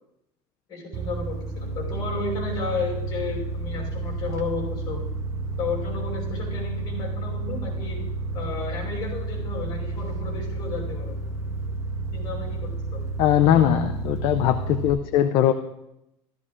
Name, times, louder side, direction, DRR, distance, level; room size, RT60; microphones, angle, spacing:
voice 1, 0.7-5.0 5.6-8.0 8.3-11.1 12.1-13.0 13.4-13.8, left 3 dB, 40° left, -3 dB, 4.9 m, -32 dB
sound 1, 0.9-14.9, right 3 dB, 30° right, 0.8 m, -31 dB
voice 2, 13.2-15.5, left 11 dB, 55° left, 8 dB, 0.5 m, -20 dB
14.5 x 13.5 x 2.5 m, 0.87 s
cardioid pair, 160°, 11 cm